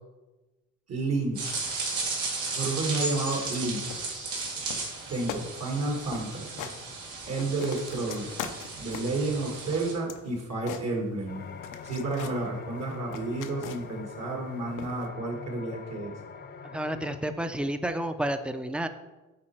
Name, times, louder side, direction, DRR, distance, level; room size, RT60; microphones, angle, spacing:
voice 1, 0.9-1.4 2.6-3.9 5.1-6.7 7.3-8.4 8.8-11.4 11.8-16.1, right 2 dB, 55° right, 1 dB, 1.8 m, -31 dB
sound 1, 1.3-9.9, right 3 dB, 80° right, 2.2 m, -35 dB
sound 2, 3.4-3.6 3.9-4.4 4.7-5.0 5.3-5.5 5.8-5.9 6.1-6.8 7.2-9.2 9.7-11.3 11.6-12.4 12.8-14.0 14.8-15.1, left 8 dB, 85° left, 0.7 m, -41 dB
sound 3, 11.3-17.2, left 5 dB, 35° left, 0.7 m, -44 dB
voice 2, 16.7-18.9, right 1 dB, 5° right, 9 dB, 0.5 m, -30 dB
8.7 x 4.3 x 4.5 m, 1.1 s
cardioid pair, 90°, 30 cm